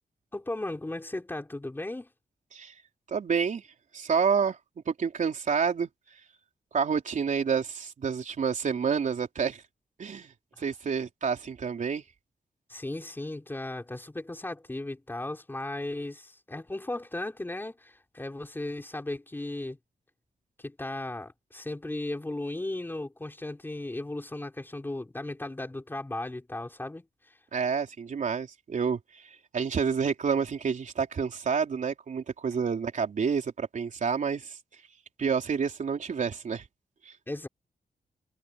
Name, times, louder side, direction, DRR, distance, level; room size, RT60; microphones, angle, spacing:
voice 1, 0.3-2.1 12.7-19.8 20.6-27.1 37.3-37.5, left 2 dB, 15° left, 3.9 m, -36 dB
voice 2, 3.1-3.6 3.9-4.6 4.9-5.9 6.7-9.6 10.0-10.3 10.6-12.0 27.5-34.6 35.2-36.6 37.1-37.2, right 6 dB, 55° right, 3.9 m, -29 dB
wide cardioid pair, 170°, 16 cm